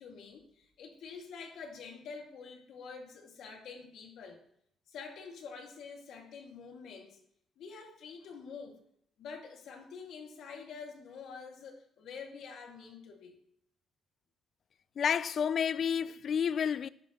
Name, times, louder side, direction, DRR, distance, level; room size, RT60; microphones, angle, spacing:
voice 1, 0.0-4.4 4.9-7.2 7.6-8.8 9.2-13.4, left 5 dB, 75° left, 2.2 m, -47 dB
voice 2, 15.0-16.9, left 7 dB, 55° left, 0.4 m, -30 dB
13.0 x 10.0 x 3.1 m
cardioid pair, 90°, 0 cm